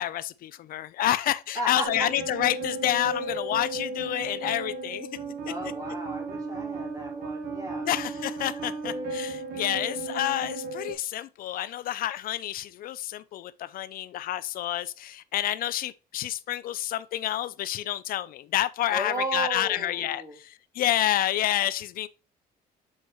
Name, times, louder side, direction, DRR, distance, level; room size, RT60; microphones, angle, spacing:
voice 1, 0.0-5.1 7.8-22.1, left 13 dB, 60° left, 0.4 m, -29 dB
voice 2, 1.5-1.9 5.5-7.9 18.9-20.4, right 1 dB, 20° right, 2.6 m, -34 dB
sound 1, 1.8-10.9, right 2 dB, 60° right, 1.9 m, -34 dB
7.2 x 4.6 x 2.9 m
cardioid pair, 110°, 17 cm